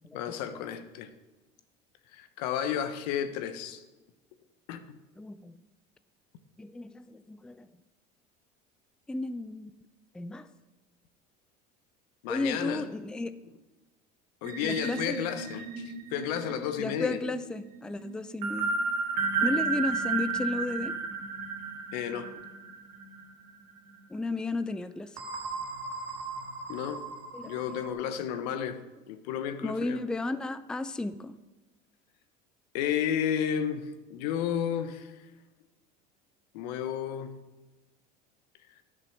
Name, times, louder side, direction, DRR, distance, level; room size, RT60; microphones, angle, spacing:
voice 1, 0.1-1.1 2.1-3.8 4.7-5.0 12.2-12.9 14.4-17.2 21.9-22.3 26.7-27.1 27.4-28.8 29.1-30.0 32.7-33.8 34.1-35.1 36.5-37.3, left 9 dB, 90° left, 1.0 m, -32 dB
voice 2, 5.2-5.5 6.6-7.7 9.1-9.7 10.1-10.5 12.3-13.3 14.6-15.2 16.8-18.8 19.4-21.0 24.1-25.1 27.3-27.8 29.6-31.3, left 2 dB, 5° left, 0.4 m, -33 dB
sound 1, 14.4-23.4 23.7-23.9 25.2-27.9, right 4 dB, 90° right, 1.7 m, -34 dB
11.0 x 6.1 x 6.5 m
supercardioid pair, 115°, 20 cm